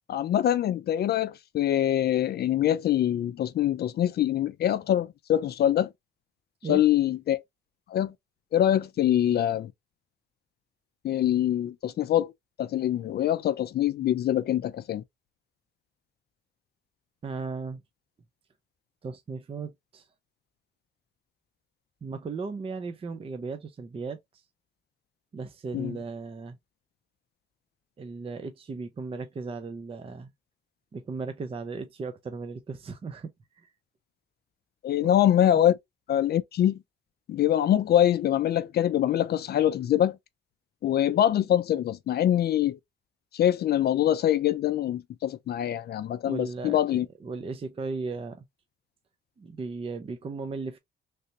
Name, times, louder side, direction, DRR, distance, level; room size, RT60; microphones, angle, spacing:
voice 1, 0.1-5.9 6.7-7.4 7.9-8.1 8.5-9.7 11.0-12.3 12.6-15.0 25.7-26.0 34.8-35.7 36.1-36.8 37.3-40.2 40.8-42.8 43.3-47.1, left 11 dB, 55° left, 0.4 m, -24 dB
voice 2, 17.2-17.8 19.0-20.1 22.0-24.2 25.3-26.6 28.0-30.3 30.9-33.3 33.6-33.7 35.0-35.1 46.2-48.4 49.4-50.8, right 4 dB, 30° right, 0.5 m, -36 dB
3.3 x 2.7 x 2.7 m
cardioid pair, 90°, 20 cm